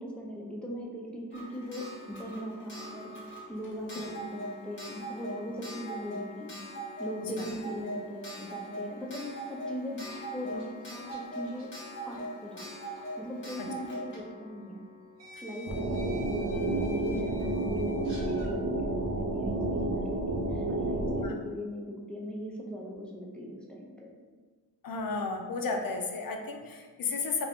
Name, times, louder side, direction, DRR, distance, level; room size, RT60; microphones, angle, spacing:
voice 1, 0.0-3.1 3.5-6.7 7.0-11.7 12.1-12.8 13.2-14.8 15.4-24.1, equal, ahead, -2 dB, 0.4 m, -40 dB
Clock, 1.3-15.9 17.1-17.2 17.4-17.5, equal, 30° left, 0.9 m, -42 dB
sound 1, 9.9-12.7 12.9-13.1 14.3-14.4 15.2-18.5, equal, 85° right, 0.9 m, -50 dB
sound 2, 15.7-21.3, right 2 dB, 50° right, 0.7 m, -30 dB
voice 2, 24.8-27.5, left 4 dB, 55° left, 3 dB, 0.5 m, -33 dB
2.5 x 2.4 x 3.5 m, 1.4 s
wide cardioid pair, 105°, 41 cm